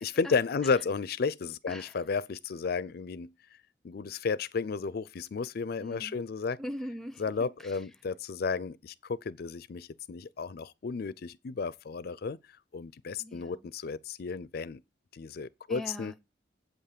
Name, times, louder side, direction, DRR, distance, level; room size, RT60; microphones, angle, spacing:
voice 1, 0.0-3.3 3.8-6.6 7.2-12.4 12.7-14.8 15.1-16.1, left 5 dB, 55° left, 0.4 m, -33 dB
voice 2, 5.8-6.2 6.6-7.8 13.2-13.7 15.7-16.2, equal, ahead, 0.7 m, -41 dB
8.1 x 5.6 x 6.7 m
head